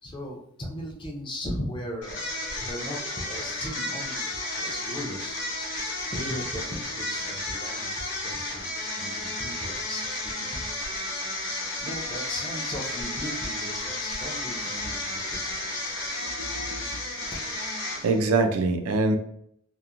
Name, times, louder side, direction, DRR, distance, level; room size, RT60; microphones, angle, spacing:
voice 1, 0.0-5.4 6.1-7.9 8.2-8.7 9.0-10.1 10.4-10.7 11.8-15.6 17.0-17.2, equal, 20° left, -1 dB, 0.5 m, -37 dB
sound 1, 2.0-18.3, left 2 dB, 50° left, 0.8 m, -33 dB
voice 2, 16.2-17.0 18.0-19.2, right 3 dB, 80° right, 6 dB, 0.4 m, -25 dB
2.9 x 2.1 x 2.4 m, 0.69 s
head